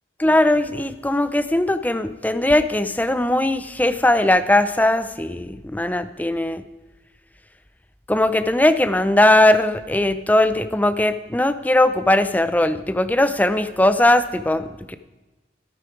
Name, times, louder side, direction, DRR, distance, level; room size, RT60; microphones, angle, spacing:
voice 1, 0.2-6.6 8.1-15.0, left 1 dB, 10° left, 11 dB, 0.6 m, -19 dB
14.0 x 11.0 x 5.0 m, 1.1 s
head